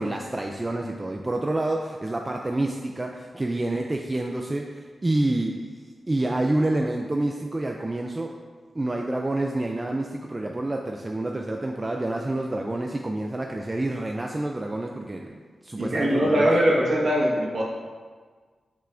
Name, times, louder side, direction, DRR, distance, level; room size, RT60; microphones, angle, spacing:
voice 1, 0.0-5.7 6.1-8.3 8.7-16.5, right 1 dB, 20° right, 1 dB, 0.3 m, -28 dB
voice 2, 15.8-17.6, equal, 50° right, -5 dB, 1.4 m, -21 dB
7.3 x 5.7 x 2.5 m, 1.5 s
wide cardioid pair, 155°, 0 cm